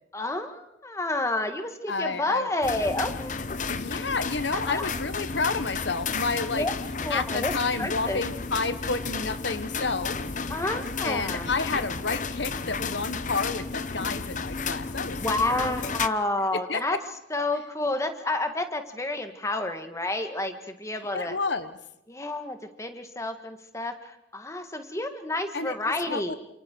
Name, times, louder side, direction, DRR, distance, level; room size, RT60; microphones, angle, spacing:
voice 1, 0.1-3.5 4.5-4.8 6.5-6.7 7.0-7.5 7.8-8.2 10.5-11.5 15.0-17.0 17.3-21.4 22.1-26.4, left 2 dB, 15° left, 7 dB, 1.8 m, -30 dB
voice 2, 1.9-2.5 3.7-6.7 7.1-10.2 11.0-15.8 16.5-16.8 21.1-21.7 25.5-25.7 26.1-26.4, left 4 dB, 80° left, 11 dB, 1.3 m, -30 dB
sound 1, 2.6-16.1, left 4 dB, 45° left, 0.9 m, -32 dB
28.5 x 27.5 x 4.6 m, 0.79 s
head